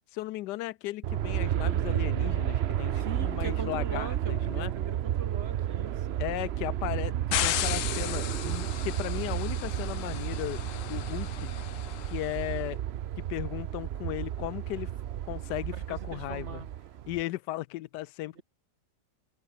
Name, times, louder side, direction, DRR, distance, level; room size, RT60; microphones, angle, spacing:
voice 1, 0.1-4.7 6.2-7.1 7.4-10.6 10.9-11.6 12.1-12.8 13.2-14.9 15.3-16.6 17.1-18.4, left 16 dB, 85° left, 1.2 m, -36 dB
Aircraft, 1.0-17.2, right 11 dB, 80° right, 0.5 m, -32 dB
voice 2, 3.0-6.2 15.7-16.7 18.4-18.5, right 5 dB, 40° right, 2.0 m, -41 dB
sound 1, 7.3-12.4, left 14 dB, 65° left, 0.8 m, -35 dB
omnidirectional pair, 1.8 m